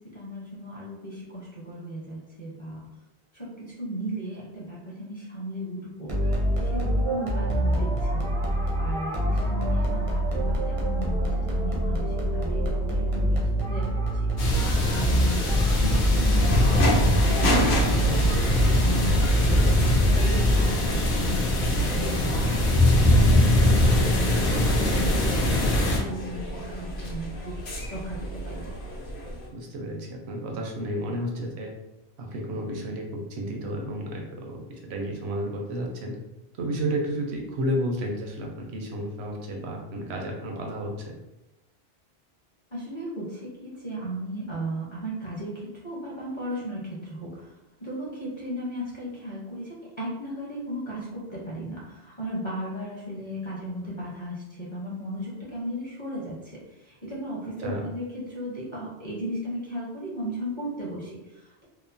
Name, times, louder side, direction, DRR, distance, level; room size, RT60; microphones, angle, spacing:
voice 1, 0.1-2.8 3.3-6.1 6.6-14.0 14.8-15.4 15.8-19.6 20.1-22.5 22.9-27.5 27.9-28.7 42.7-47.5 47.8-61.6, equal, 30° left, -7 dB, 0.6 m, -35 dB
sound 1, 6.1-21.0, equal, 45° right, 0.5 m, -25 dB
sound 2, 14.4-26.0, left 1 dB, 80° left, 0.9 m, -22 dB
sound 3, 16.3-29.5, equal, 55° left, 0.9 m, -32 dB
voice 2, 19.3-19.8 29.5-31.7 32.2-34.6 34.8-36.1 36.6-40.9 57.6-57.8, right 1 dB, 80° right, 0 dB, 0.9 m, -31 dB
2.9 x 2.0 x 2.5 m, 0.95 s
omnidirectional pair, 1.1 m